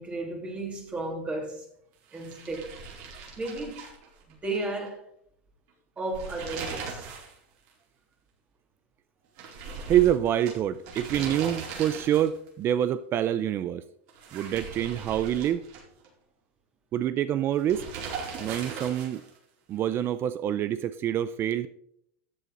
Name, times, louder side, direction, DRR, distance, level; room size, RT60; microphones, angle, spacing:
voice 1, 0.0-1.7 2.1-2.7 3.4-3.8 4.3-5.0 6.0-7.1, right 2 dB, 15° right, 2.5 m, -34 dB
sound 1, 2.1-4.6 4.9-5.0 6.0-7.4 7.7-7.8 9.4-12.5 14.1-16.1 17.7-19.4, right 5 dB, 55° right, 4.3 m, -39 dB
voice 2, 9.9-13.8 14.3-15.6 16.9-17.8 18.4-19.2 19.7-21.7, right 11 dB, 35° right, 0.5 m, -26 dB
13.5 x 8.2 x 3.9 m
supercardioid pair, 135°, 7 cm